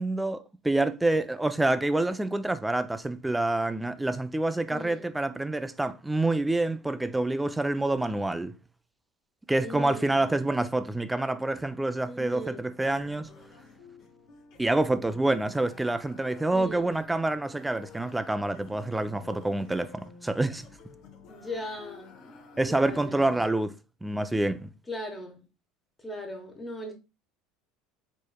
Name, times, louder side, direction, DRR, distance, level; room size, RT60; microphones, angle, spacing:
voice 1, 0.0-8.5 9.5-13.3 14.6-20.7 22.6-23.7 24.0-24.7, right 2 dB, 5° right, 0.3 m, -27 dB
voice 2, 4.7-5.1 9.6-10.2 12.1-12.7 16.5-16.9 21.0-23.4 24.9-25.4 26.0-26.9, left 1 dB, 15° left, 1.0 m, -39 dB
sound 1, 12.8-23.5, left 4 dB, 50° left, 0.9 m, -51 dB
4.7 x 3.0 x 2.2 m
supercardioid pair, 120°, 0 cm